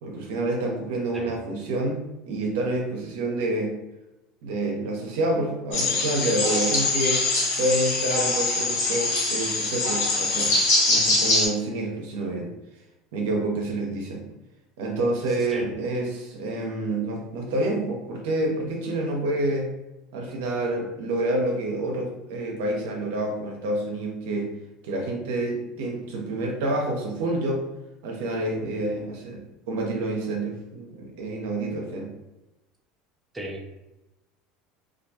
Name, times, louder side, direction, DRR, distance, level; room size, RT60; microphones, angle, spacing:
voice 1, 0.0-2.0 2.3-3.7 4.4-7.2 7.6-10.5 10.9-12.5 13.1-14.2 14.8-19.7 20.1-24.5 24.8-27.7 28.0-32.1, right 2 dB, 80° right, 0 dB, 0.6 m, -28 dB
sound 1, 5.7-11.5, left 2 dB, 70° left, 1.2 m, -23 dB
voice 2, 33.3-33.8, right 1 dB, 10° right, -1 dB, 0.6 m, -35 dB
2.3 x 2.2 x 2.8 m, 0.95 s
supercardioid pair, 95°, 0 cm